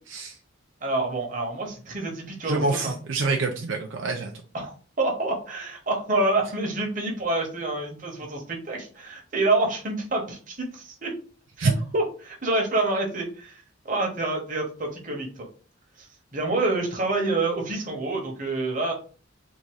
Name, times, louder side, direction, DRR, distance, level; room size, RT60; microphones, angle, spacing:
voice 1, 0.8-2.9 4.5-11.2 11.6-15.5 16.0-18.9, right 2 dB, 40° right, 1 dB, 1.2 m, -27 dB
voice 2, 2.4-4.3 11.6-11.7, right 3 dB, 70° right, 1 dB, 0.6 m, -26 dB
3.7 x 2.6 x 4.6 m, 0.39 s
head